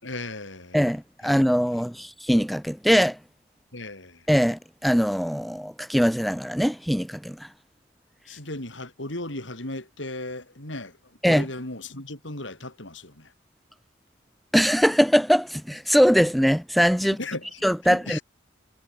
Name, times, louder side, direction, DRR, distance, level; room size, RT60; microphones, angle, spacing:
voice 1, 0.0-0.8 1.2-1.4 1.7-1.8 3.7-4.2 8.3-11.0 11.2-13.3 17.2-18.2, left 2 dB, 80° left, 6.5 m, -36 dB
voice 2, 0.7-3.2 4.3-7.5 11.2-11.5 14.5-17.2 17.6-18.2, equal, ahead, 1.5 m, -21 dB
head